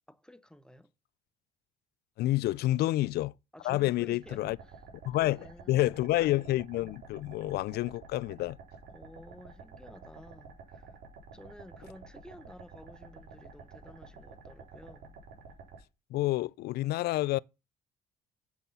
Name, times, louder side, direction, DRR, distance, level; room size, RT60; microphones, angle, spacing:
voice 1, 0.1-0.9 2.5-2.6 3.5-4.8 5.1-6.0 8.9-11.0 11.3-15.2, left 1 dB, 5° left, 0.8 m, -52 dB
voice 2, 2.2-3.3 3.6-4.6 5.1-8.6 16.1-17.4, left 16 dB, 70° left, 0.5 m, -29 dB
sound 1, 4.2-15.8, right 4 dB, 75° right, 4.1 m, -50 dB
8.2 x 7.3 x 5.4 m
cardioid pair, 110°, 17 cm